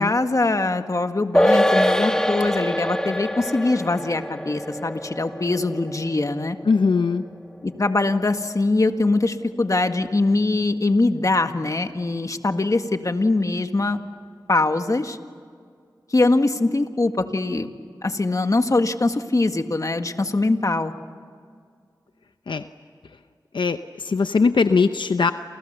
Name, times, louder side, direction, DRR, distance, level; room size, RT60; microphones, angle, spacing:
voice 1, 0.0-6.6 7.6-14.0 14.5-15.2 16.1-17.7 18.0-20.9, left 2 dB, 45° left, 7 dB, 1.7 m, -22 dB
sound 1, 1.3-8.0 8.3-8.4, left 1 dB, 10° left, 2.3 m, -24 dB
voice 2, 6.7-7.2 22.5-22.6 23.5-25.3, left 4 dB, 80° left, 9 dB, 0.8 m, -20 dB
29.5 x 29.0 x 6.8 m, 2.1 s
wide cardioid pair, 60°, 8 cm